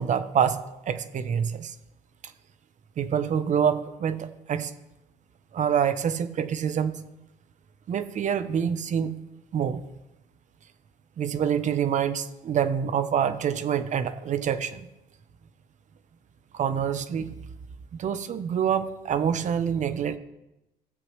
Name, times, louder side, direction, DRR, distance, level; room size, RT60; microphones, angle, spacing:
voice 1, 0.0-1.7 3.0-4.7 5.5-7.1 7.9-9.2 9.5-9.8 11.2-14.8 16.5-17.4 17.9-20.2, right 8 dB, 45° right, 12 dB, 0.7 m, -26 dB
15.5 x 7.6 x 3.2 m, 0.96 s
cardioid pair, 110°, 17 cm